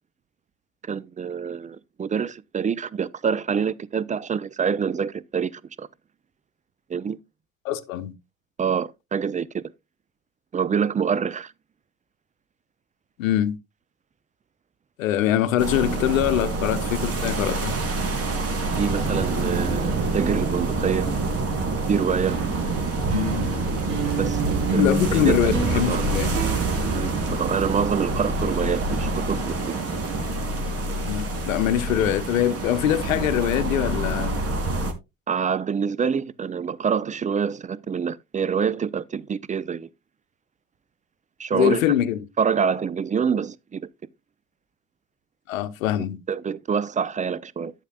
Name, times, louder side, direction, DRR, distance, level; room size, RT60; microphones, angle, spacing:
voice 1, 0.9-5.9 6.9-7.2 8.6-9.6 10.5-11.5 18.8-21.1 21.9-22.4 24.2-24.4 24.7-24.8 25.1-25.5 25.9-26.1 26.9-29.7 35.3-39.9 41.4-41.8 42.4-43.9 46.3-47.7, right 6 dB, 20° right, 0.5 m, -26 dB
voice 2, 7.6-8.1 13.2-13.6 15.0-17.7 24.8-26.4 31.0-34.4 41.5-42.2 45.5-46.2, left 11 dB, 75° left, 0.9 m, -23 dB
sound 1, 15.6-34.9, right 3 dB, 35° right, 2.5 m, -26 dB
sound 2, 22.3-27.9, right 3 dB, 65° right, 3.9 m, -30 dB
11.5 x 8.3 x 2.3 m
hypercardioid pair, 60°, 40 cm